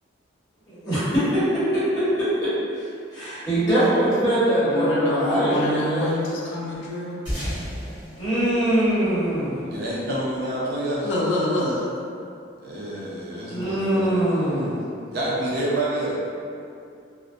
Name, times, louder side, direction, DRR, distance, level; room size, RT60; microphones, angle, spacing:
voice 1, 0.7-1.8 2.2-2.5 2.8-6.1 8.2-9.6 13.5-14.8, right 1 dB, 20° left, -16 dB, 1.0 m, -22 dB
voice 2, 4.6-7.2 11.0-11.9, left 2 dB, 75° left, -5 dB, 0.4 m, -26 dB
sound 1, 7.3-10.0, equal, 75° right, 1.3 m, -33 dB
voice 3, 9.7-11.1 12.6-14.1 15.1-16.2, right 1 dB, 55° right, -6 dB, 0.4 m, -28 dB
2.4 x 2.0 x 2.4 m, 2.4 s
head